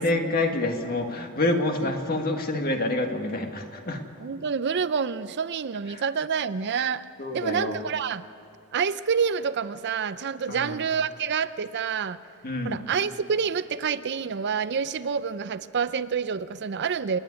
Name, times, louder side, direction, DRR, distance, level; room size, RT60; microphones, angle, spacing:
voice 1, 0.0-4.0 7.2-7.8 10.5-10.7 12.4-12.8, left 2 dB, 45° left, 4 dB, 1.8 m, -27 dB
voice 2, 4.2-7.1 7.3-8.2 8.7-12.2 12.6-17.2, right 6 dB, 50° right, 14 dB, 0.5 m, -28 dB
29.0 x 9.9 x 9.6 m, 2.4 s
head